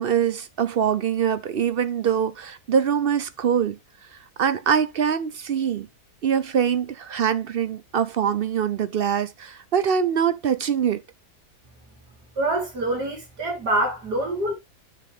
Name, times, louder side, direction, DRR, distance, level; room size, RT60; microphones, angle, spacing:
voice 1, 0.0-3.8 4.4-5.9 6.2-11.0, right 8 dB, 60° right, 0.6 m, -23 dB
voice 2, 12.4-14.5, right 1 dB, 85° right, 4.3 m, -25 dB
9.4 x 6.5 x 3.4 m
omnidirectional pair, 1.7 m